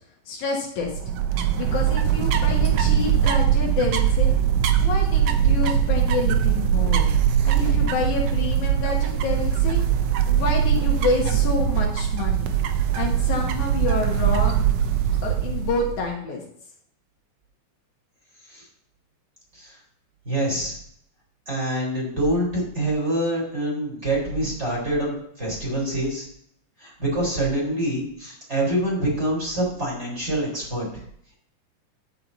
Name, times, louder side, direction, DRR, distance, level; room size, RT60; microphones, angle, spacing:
voice 1, 0.3-1.0 1.3-4.3 4.8-7.1 7.4-9.8 10.3-12.5 12.9-14.7 15.2-16.4, left 4 dB, 70° left, 0 dB, 2.6 m, -28 dB
sound 1, 0.8-16.1, right 9 dB, 70° right, 1.5 m, -21 dB
voice 2, 20.3-20.7 21.5-26.2 26.8-31.0, right 1 dB, 20° right, -4 dB, 4.1 m, -26 dB
10.5 x 8.7 x 4.0 m, 0.69 s
omnidirectional pair, 3.8 m